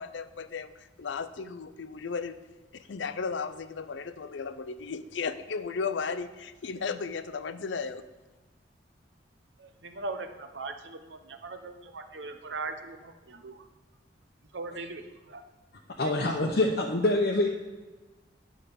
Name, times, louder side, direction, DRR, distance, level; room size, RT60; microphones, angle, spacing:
voice 1, 0.0-2.4 2.9-8.0, left 5 dB, 80° left, 13 dB, 0.5 m, -35 dB
voice 2, 9.6-13.6 14.5-15.0 15.3-15.4, right 3 dB, 75° right, 7 dB, 0.8 m, -39 dB
voice 3, 16.0-17.5, left 2 dB, 60° left, 0 dB, 0.8 m, -25 dB
9.8 x 5.1 x 6.9 m, 1.2 s
head